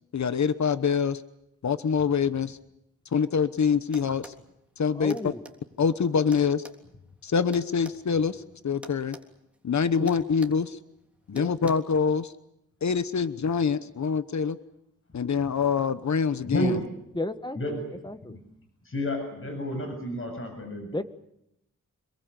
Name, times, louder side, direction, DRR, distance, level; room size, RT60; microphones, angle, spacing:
voice 1, 0.1-1.2 1.6-2.6 3.1-4.3 4.8-5.1 5.8-6.6 7.2-9.2 9.6-10.8 11.3-12.3 12.8-14.6 15.1-16.8, left 6 dB, 65° left, 12 dB, 1.1 m, -25 dB
sound 1, 3.9-4.4 5.1-5.6 6.3-8.0 8.8-9.3 9.5-9.7 10.1-10.6 11.4-11.7, right 1 dB, 5° right, 3.4 m, -46 dB
voice 2, 4.9-5.5 10.0-10.1 11.3-11.5 17.1-17.8 18.0-18.4 20.9-21.0, left 1 dB, 15° left, 10 dB, 1.6 m, -33 dB
voice 3, 16.4-16.8 17.6-17.9 18.3-18.4 18.8-21.0, equal, 45° left, 4 dB, 7.1 m, -31 dB
27.0 x 22.5 x 8.3 m, 0.82 s
wide cardioid pair, 80°, 31 cm